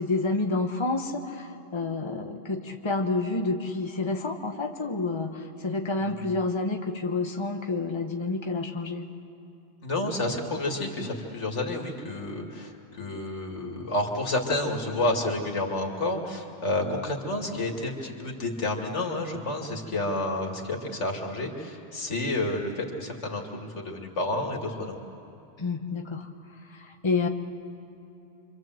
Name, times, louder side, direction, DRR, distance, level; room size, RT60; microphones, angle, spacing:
voice 1, 0.0-9.0 25.6-26.3 26.7-27.3, left 3 dB, 25° left, 3 dB, 1.3 m, -29 dB
voice 2, 6.0-6.3 9.8-25.0, left 2 dB, 90° left, 2 dB, 2.7 m, -30 dB
27.0 x 25.0 x 7.8 m, 2.9 s
omnidirectional pair, 1.2 m